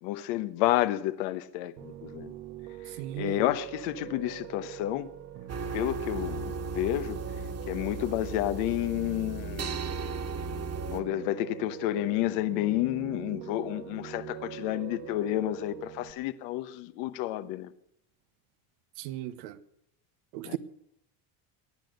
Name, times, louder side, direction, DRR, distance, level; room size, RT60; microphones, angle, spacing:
voice 1, 0.0-2.3 2.8-5.1 5.7-7.2 7.7-9.8 10.9-17.7 20.4-20.6, left 14 dB, 80° left, 1.2 m, -30 dB
Piano, 1.8-16.1, right 10 dB, 55° right, 1.5 m, -43 dB
voice 2, 3.0-3.4 19.0-19.6 20.3-20.6, right 14 dB, 85° right, 1.2 m, -36 dB
sound 1, 5.5-11.0, right 4 dB, 35° right, 1.8 m, -36 dB
19.0 x 11.0 x 6.6 m
supercardioid pair, 115°, 46 cm